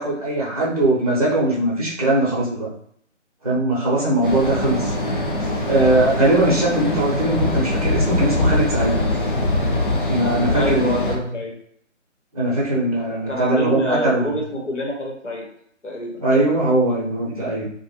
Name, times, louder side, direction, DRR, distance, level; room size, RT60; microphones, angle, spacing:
voice 1, 0.0-2.7 3.4-4.9 5.7-9.0 10.1-11.3 12.3-14.3 16.2-17.7, right 1 dB, 30° right, -5 dB, 0.7 m, -20 dB
sound 1, 4.2-11.2, left 1 dB, 45° left, 0.4 m, -22 dB
voice 2, 10.5-11.6 13.3-15.5 15.8-16.5, equal, 70° left, -1 dB, 1.0 m, -27 dB
2.4 x 2.2 x 3.0 m, 0.66 s
figure-of-eight pair, 155°, 38 cm